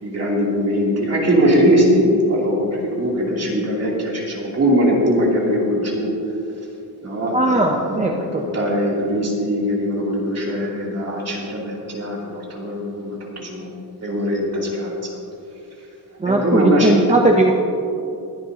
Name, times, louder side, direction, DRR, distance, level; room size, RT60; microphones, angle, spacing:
voice 1, 0.0-6.1 7.0-13.7 14.0-15.1 16.2-17.2, equal, 40° right, -4 dB, 2.8 m, -21 dB
voice 2, 7.3-8.4 16.2-17.5, right 2 dB, 15° right, 1 dB, 0.6 m, -18 dB
22.5 x 10.5 x 2.8 m, 2.8 s
wide cardioid pair, 170°, 41 cm